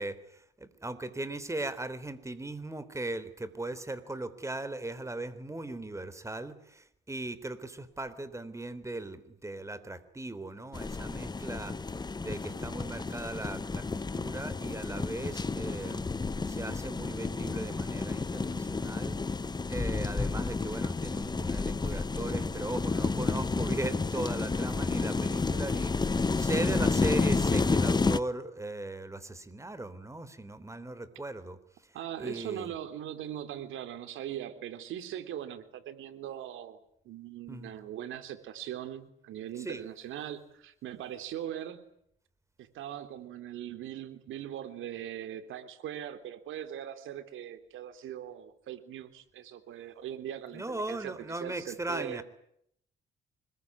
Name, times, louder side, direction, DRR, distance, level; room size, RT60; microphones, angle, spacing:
voice 1, 0.0-19.2 19.7-32.7 37.5-37.8 39.6-39.8 50.5-52.2, right 2 dB, 15° right, 14 dB, 3.6 m, -38 dB
sound 1, 10.7-28.2, left 4 dB, 20° left, 1.1 m, -31 dB
voice 2, 31.9-36.8 37.0-41.8 42.6-52.2, right 11 dB, 85° right, 9 dB, 3.3 m, -40 dB
26.0 x 21.5 x 9.7 m, 0.71 s
cardioid pair, 90°, 20 cm